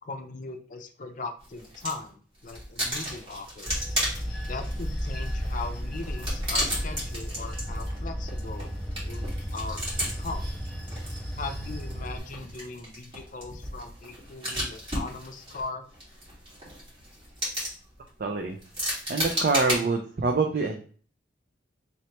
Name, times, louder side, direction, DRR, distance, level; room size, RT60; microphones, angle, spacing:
voice 1, 0.0-3.9 4.4-8.7 9.0-10.5 11.4-15.9, left 3 dB, 45° left, 5 dB, 0.5 m, -39 dB
sound 1, 1.4-2.1 2.4-19.8, equal, 30° right, 1.7 m, -35 dB
Bell / Train, 3.7-12.2, equal, ahead, 0.9 m, -33 dB
voice 2, 18.2-18.6 19.1-20.8, right 3 dB, 50° right, 3 dB, 0.5 m, -25 dB
4.2 x 3.2 x 2.9 m, 0.43 s
head